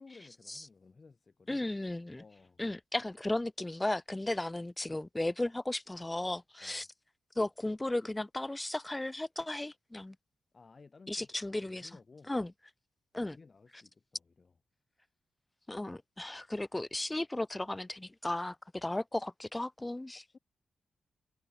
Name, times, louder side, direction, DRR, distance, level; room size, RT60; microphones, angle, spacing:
voice 1, 0.0-1.6 2.2-2.6 6.6-6.9 10.5-11.3 11.7-12.3 13.3-14.5 20.3-20.4, left 4 dB, 40° left, 7.7 m, -57 dB
voice 2, 1.5-2.2 2.6-6.9 7.4-10.1 11.1-11.9 12.3-12.5 13.1-13.4 15.7-20.2, left 1 dB, 15° left, 3.1 m, -35 dB
cardioid pair, 85°, 0 cm